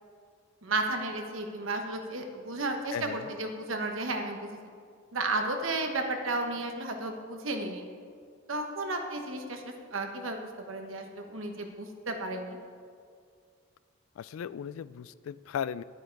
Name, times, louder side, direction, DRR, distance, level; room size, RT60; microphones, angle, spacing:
voice 1, 0.6-4.5 5.1-7.8 8.5-12.6, right 2 dB, 75° right, 4 dB, 1.1 m, -33 dB
voice 2, 2.9-3.3 14.2-15.8, left 8 dB, 85° left, 19 dB, 0.3 m, -36 dB
11.0 x 9.0 x 4.7 m, 2.1 s
head